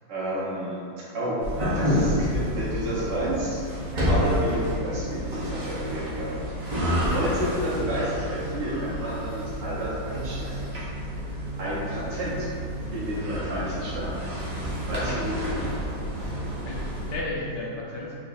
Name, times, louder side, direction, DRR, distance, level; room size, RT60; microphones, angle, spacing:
voice 1, 0.1-1.4 1.7-3.6 3.9-10.6 11.2-12.5 12.9-14.3 14.9-15.6, right 1 dB, 65° right, -8 dB, 1.6 m, -30 dB
sound 1, 1.4-17.1, equal, 45° right, 0.5 m, -29 dB
voice 2, 6.7-7.3 11.6-11.7 16.6-16.8 17.1-18.2, left 2 dB, 75° left, -4 dB, 1.1 m, -34 dB
4.2 x 2.3 x 4.1 m, 2.5 s
omnidirectional pair, 2.1 m